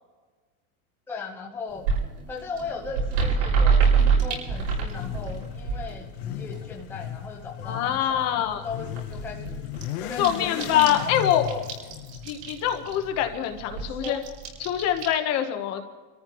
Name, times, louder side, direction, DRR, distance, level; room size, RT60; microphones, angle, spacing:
voice 1, 1.1-1.9 2.3-9.7 10.0-11.7 13.7-14.2, left 4 dB, 5° left, -1 dB, 0.9 m, -37 dB
sound 1, 1.7-6.9 7.2-8.1 8.5-8.6 8.8-15.1, right 5 dB, 85° right, 6.1 m, -26 dB
Motorcycle / Accelerating revving vroom, 4.5-13.3, left 12 dB, 75° left, 0.8 m, -37 dB
voice 2, 7.6-8.6 10.2-11.5 12.3-14.2 14.6-15.8, left 10 dB, 35° left, 6 dB, 1.1 m, -24 dB
27.0 x 14.0 x 3.1 m, 1.3 s
supercardioid pair, 175°, 44 cm